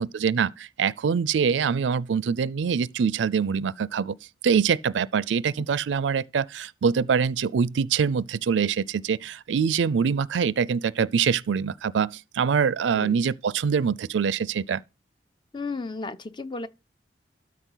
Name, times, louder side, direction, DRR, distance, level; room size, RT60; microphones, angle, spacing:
voice 1, 0.0-4.2 4.4-14.8, right 6 dB, 85° right, 0.4 m, -24 dB
voice 2, 15.5-16.7, left 3 dB, 25° left, 0.5 m, -33 dB
12.5 x 4.7 x 3.9 m
head